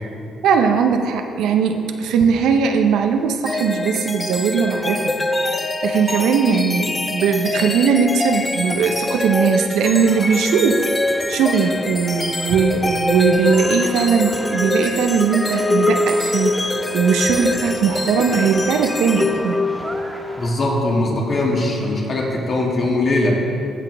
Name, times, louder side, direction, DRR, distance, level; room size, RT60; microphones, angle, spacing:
voice 1, 0.4-5.1 5.8-19.6, right 6 dB, 85° right, 5 dB, 0.6 m, -19 dB
sound 1, 3.5-20.1, left 2 dB, 20° left, 0.5 m, -23 dB
sound 2, 9.8-20.5, right 1 dB, 15° right, 1.7 m, -38 dB
voice 2, 20.4-23.4, left 2 dB, 45° left, -2 dB, 2.1 m, -20 dB
14.5 x 6.0 x 3.4 m, 2.7 s
cardioid pair, 90°, 0 cm